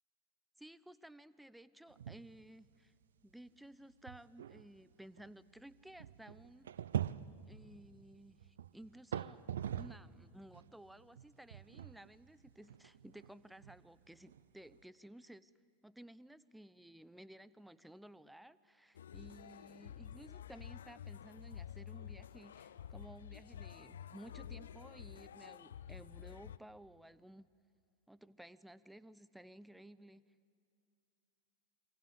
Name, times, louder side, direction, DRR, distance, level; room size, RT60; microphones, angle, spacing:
voice 1, 0.6-2.9 3.2-6.7 7.5-9.4 9.7-15.5 15.8-27.5 28.1-30.3, right 1 dB, 5° right, 18 dB, 0.6 m, -56 dB
sound 1, 1.9-2.4 2.7-2.8 3.5-3.6 4.1-10.2 10.5-14.8, right 10 dB, 65° right, 0.6 m, -44 dB
sound 2, 18.9-26.6, left 9 dB, 65° left, 0.7 m, -50 dB
27.5 x 24.0 x 8.4 m, 2.5 s
figure-of-eight pair, 90°, 0 cm